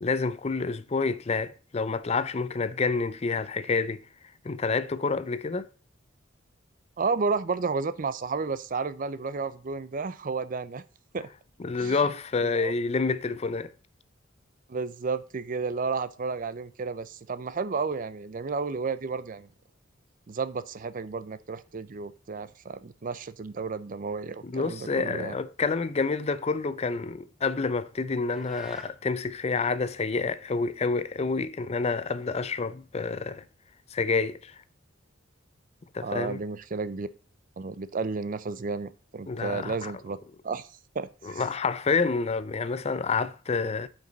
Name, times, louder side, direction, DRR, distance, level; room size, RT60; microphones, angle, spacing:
voice 1, 0.0-4.0 4.4-5.7 11.6-13.7 24.4-33.4 33.9-34.5 35.9-36.4 39.3-39.9 41.2-43.9, left 4 dB, 35° left, 0.5 m, -28 dB
voice 2, 7.0-10.8 11.1-11.3 11.8-12.0 12.4-12.7 14.7-19.5 20.3-25.4 36.0-37.1 37.6-40.2 40.4-40.7 40.9-41.4, right 4 dB, 45° right, 0.5 m, -32 dB
sound 1, 28.3-29.0, equal, 5° right, 0.9 m, -48 dB
9.3 x 5.3 x 4.0 m
head